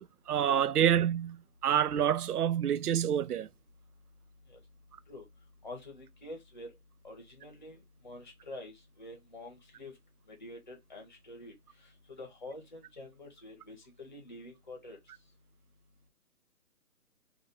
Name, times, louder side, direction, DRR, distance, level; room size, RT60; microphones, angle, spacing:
voice 1, 0.0-1.4 1.6-3.5, right 9 dB, 90° right, 0.6 m, -27 dB
voice 2, 5.6-6.7 7.0-9.9 10.3-11.5 12.1-15.0, left 1 dB, 30° left, 1.0 m, -47 dB
3.2 x 2.6 x 4.0 m
hypercardioid pair, 170°, 44 cm